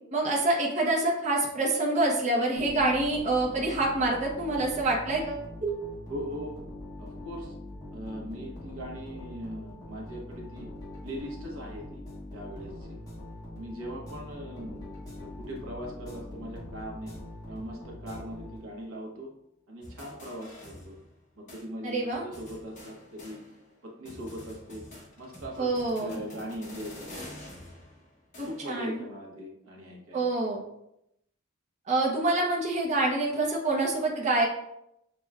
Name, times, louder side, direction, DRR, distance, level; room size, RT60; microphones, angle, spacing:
voice 1, 0.1-5.9 21.8-22.2 25.6-26.2 28.4-29.0 30.1-30.6 31.9-34.5, right 2 dB, 35° right, -3 dB, 0.6 m, -26 dB
sound 1, 2.6-19.0, left 1 dB, 20° left, 1.2 m, -43 dB
voice 2, 6.1-6.6 7.0-7.5 7.9-10.7 11.0-13.0 13.5-14.8 15.2-17.1 17.5-19.3 19.7-21.0 21.4-23.4 23.8-24.8 25.2-27.3 28.4-30.3, equal, 85° right, -1 dB, 0.9 m, -40 dB
sound 2, 19.8-21.2 21.5-21.6 22.1-23.8 24.0-28.8, left 1 dB, 35° left, 0.9 m, -47 dB
6.1 x 2.2 x 2.3 m, 0.82 s
head